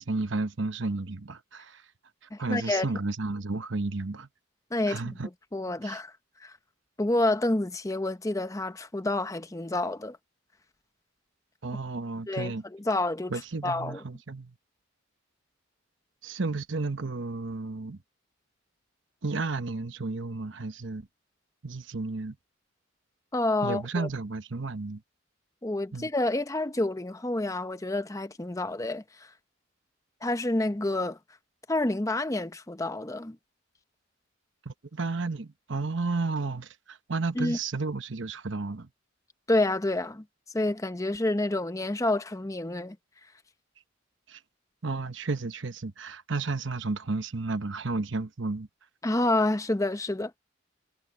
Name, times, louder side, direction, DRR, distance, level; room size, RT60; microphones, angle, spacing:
voice 1, 0.0-1.8 2.4-4.3 4.9-5.3 5.8-6.0 11.6-12.6 13.3-14.5 16.2-18.0 19.2-21.1 21.6-22.4 23.6-25.0 25.9-26.1 34.6-38.9 44.3-44.4 44.8-48.7, right 3 dB, 65° right, 1.0 m, -32 dB
voice 2, 2.3-2.9 4.7-6.1 6.4-6.5 7.0-10.2 12.3-13.3 13.6-14.0 23.3-24.1 25.6-29.3 30.2-31.2 31.7-33.4 37.3-37.6 39.5-40.2 40.5-43.0 49.0-50.4, left 2 dB, 15° left, 0.7 m, -28 dB
head